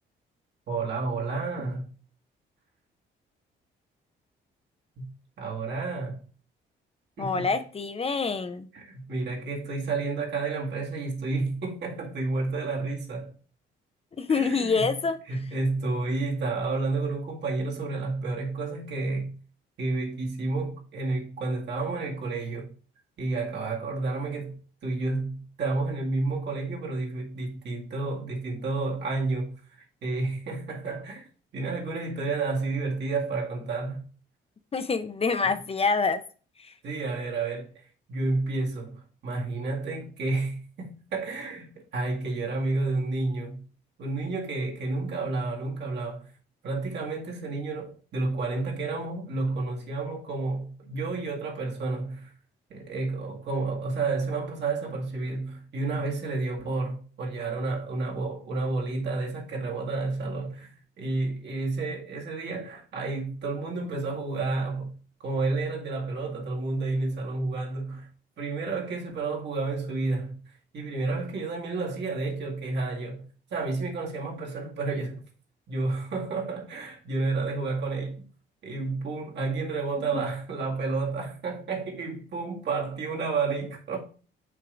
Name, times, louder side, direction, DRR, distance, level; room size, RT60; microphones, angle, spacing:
voice 1, 0.7-1.9 5.0-5.1 5.4-6.2 7.2-7.5 8.7-13.3 14.3-14.9 15.3-19.3 19.8-22.7 23.2-24.6 24.8-34.1 36.8-37.7 38.1-43.6 44.0-46.3 46.6-52.3 52.7-60.7 61.0-64.9 65.2-68.1 68.4-70.4 70.7-73.2 73.5-75.2 75.7-78.2 78.6-84.0, right 3 dB, 60° right, 2.0 m, -30 dB
voice 2, 7.2-8.7 14.2-15.2 34.7-36.2 36.6-36.7 80.1-80.2, left 4 dB, 30° left, 0.7 m, -26 dB
5.8 x 3.7 x 5.1 m
cardioid pair, 90°, 20 cm